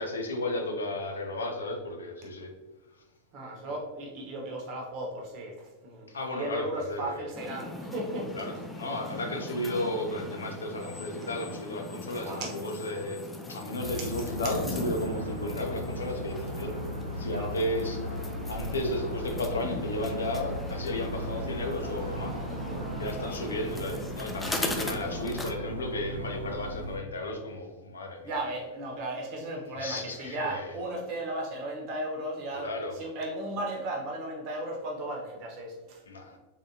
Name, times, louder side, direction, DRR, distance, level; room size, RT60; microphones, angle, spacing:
voice 1, 0.0-2.5 6.1-7.3 8.3-13.2 13.5-16.7 17.2-18.0 18.5-22.4 23.0-28.4 29.8-30.8 32.5-33.0 36.1-36.4, left 1 dB, 70° left, 3 dB, 0.6 m, -34 dB
voice 2, 3.3-5.5 5.8-6.1 6.3-8.7 12.1-12.6 17.3-17.5 22.5-23.0 28.2-32.7 32.9-36.0, right 1 dB, 40° right, 0 dB, 1.0 m, -35 dB
sound 1, 7.3-25.5, left 2 dB, 10° left, 0.5 m, -39 dB
sound 2, 13.8-27.0, equal, 80° right, 0.5 m, -37 dB
3.7 x 3.3 x 2.7 m, 1.2 s
figure-of-eight pair, 90°, 0 cm